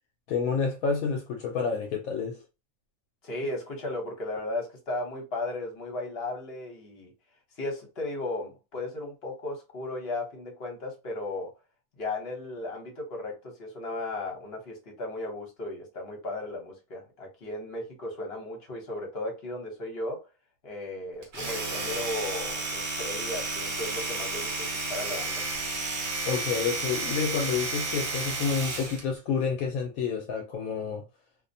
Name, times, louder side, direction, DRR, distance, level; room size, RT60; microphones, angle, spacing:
voice 1, 0.3-2.4 26.2-31.0, left 6 dB, 75° left, 1.0 m, -29 dB
voice 2, 3.2-7.1 7.6-11.5 12.0-20.3 20.6-25.5, left 2 dB, 50° left, 1.0 m, -35 dB
Domestic sounds home sounds, 21.2-29.1, right 3 dB, 55° right, 1.0 m, -32 dB
2.6 x 2.0 x 2.6 m
omnidirectional pair, 1.5 m